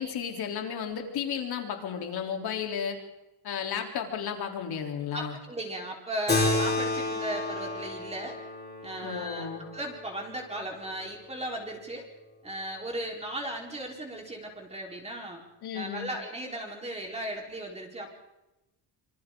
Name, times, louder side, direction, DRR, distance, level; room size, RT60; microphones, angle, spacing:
voice 1, 0.0-3.0 3.4-5.4 9.0-9.7 15.6-16.1, left 7 dB, 65° left, 3 dB, 3.7 m, -33 dB
voice 2, 5.1-8.4 8.8-12.1 12.4-15.4 15.7-18.1, right 1 dB, 15° right, 0 dB, 4.2 m, -36 dB
Keyboard (musical), 6.3-11.2, left 2 dB, 25° left, 5.0 m, -31 dB
26.0 x 25.5 x 3.9 m, 0.96 s
cardioid pair, 145°, 42 cm